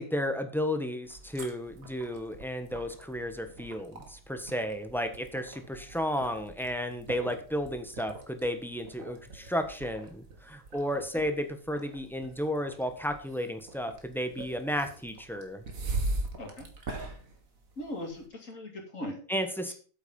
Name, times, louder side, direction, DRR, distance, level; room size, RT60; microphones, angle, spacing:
voice 1, 0.0-15.6 19.3-19.7, equal, ahead, 6 dB, 1.1 m, -33 dB
sound 1, 1.0-18.2, right 2 dB, 85° right, 2.1 m, -41 dB
voice 2, 17.8-19.2 19.7-19.8, left 1 dB, 70° left, 2 dB, 3.2 m, -39 dB
8.3 x 8.2 x 5.3 m, 0.40 s
omnidirectional pair, 1.4 m